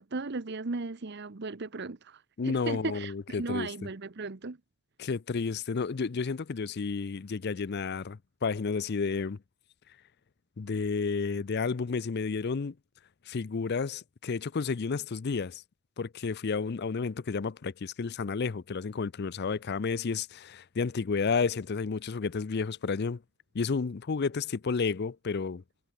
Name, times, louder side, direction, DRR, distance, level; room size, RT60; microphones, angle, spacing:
voice 1, 0.0-4.6, right 3 dB, 55° right, 0.9 m, -36 dB
voice 2, 2.4-3.7 5.0-9.4 10.6-12.7 13.3-15.6 16.0-23.2 23.5-25.6, left 5 dB, 50° left, 0.5 m, -31 dB
head